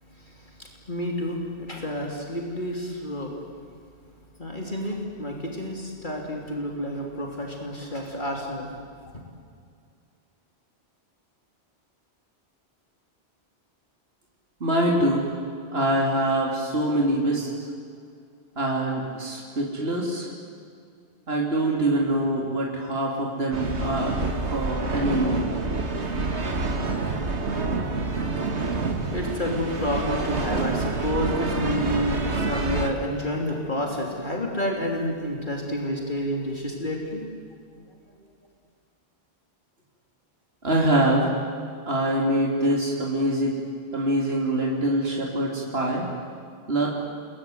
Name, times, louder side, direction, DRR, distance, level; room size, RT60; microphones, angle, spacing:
voice 1, 0.0-3.3 4.4-8.8 9.1-9.2 27.5-37.2 37.7-37.9 38.2-38.3, equal, 45° left, 0 dB, 3.5 m, -30 dB
voice 2, 14.6-15.3 15.7-17.5 18.6-20.3 21.3-24.2 24.5-25.5 40.6-41.3 41.9-43.6 43.9-46.1 46.7-46.9, right 1 dB, 65° right, -2 dB, 3.6 m, -24 dB
sound 1, 23.5-32.9, right 3 dB, 85° right, 2.2 m, -27 dB
28.5 x 21.5 x 9.5 m, 2.3 s
omnidirectional pair, 1.1 m